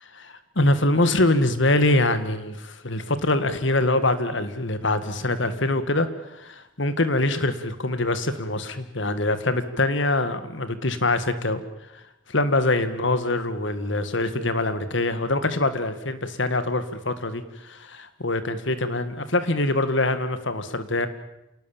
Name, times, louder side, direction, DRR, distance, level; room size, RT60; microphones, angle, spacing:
voice 1, 0.1-11.6 11.9-12.0 12.3-21.1, left 2 dB, 65° left, 11 dB, 1.9 m, -24 dB
28.0 x 18.5 x 7.3 m, 0.87 s
head